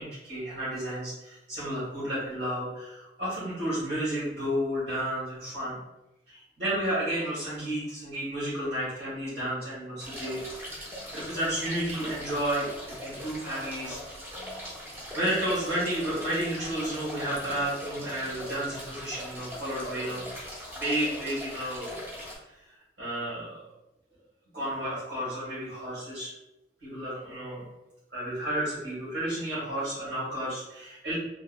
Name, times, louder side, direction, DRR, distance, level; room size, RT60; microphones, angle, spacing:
voice 1, 0.0-5.8 6.3-14.0 15.1-20.3 20.7-22.0 23.0-23.6 24.5-26.3 26.8-27.6 28.1-31.2, right 1 dB, 80° right, -10 dB, 1.3 m, -32 dB
sound 1, 10.0-22.4, equal, 10° right, 0.5 m, -40 dB
2.7 x 2.2 x 2.3 m, 0.94 s
head